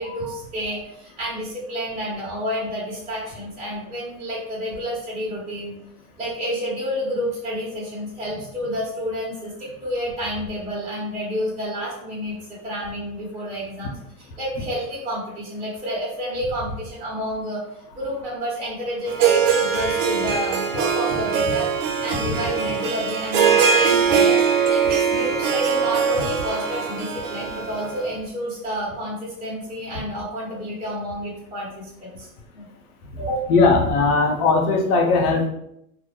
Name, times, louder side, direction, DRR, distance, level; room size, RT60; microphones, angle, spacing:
voice 1, 0.0-5.8 6.2-12.4 12.6-17.6 17.9-21.7 22.0-24.4 24.7-32.3 32.5-32.7 33.2-33.4, equal, 15° right, -7 dB, 0.9 m, -29 dB
Harp, 19.1-28.1, right 6 dB, 60° right, 0.6 m, -21 dB
voice 2, 33.5-35.5, left 3 dB, 80° left, 3 dB, 0.6 m, -18 dB
2.1 x 2.0 x 2.8 m, 0.76 s
hypercardioid pair, 90°, 43 cm